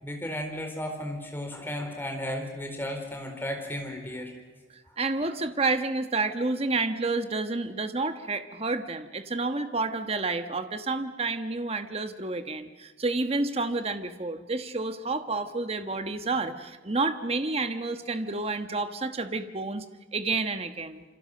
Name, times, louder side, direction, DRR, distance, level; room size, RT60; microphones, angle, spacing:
voice 1, 0.0-4.3, left 1 dB, 10° left, 3 dB, 4.1 m, -34 dB
voice 2, 5.0-19.8 20.1-21.0, right 3 dB, 30° right, 9 dB, 1.2 m, -29 dB
27.5 x 25.0 x 6.7 m, 1.3 s
head